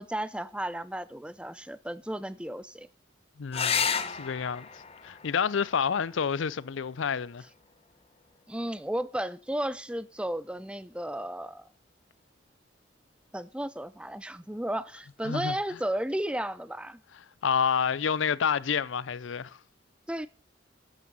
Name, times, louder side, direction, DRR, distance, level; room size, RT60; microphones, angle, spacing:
voice 1, 0.0-2.9 8.5-11.7 13.3-17.0 20.1-20.3, right 1 dB, 5° right, 0.5 m, -34 dB
voice 2, 3.4-4.7 5.0-7.5 15.2-15.6 17.4-19.6, left 6 dB, 80° left, 0.5 m, -29 dB
sound 1, 3.5-8.5 10.4-11.1 14.5-14.6 15.0-15.1, left 6 dB, 30° left, 0.9 m, -35 dB
12.5 x 8.8 x 5.3 m
head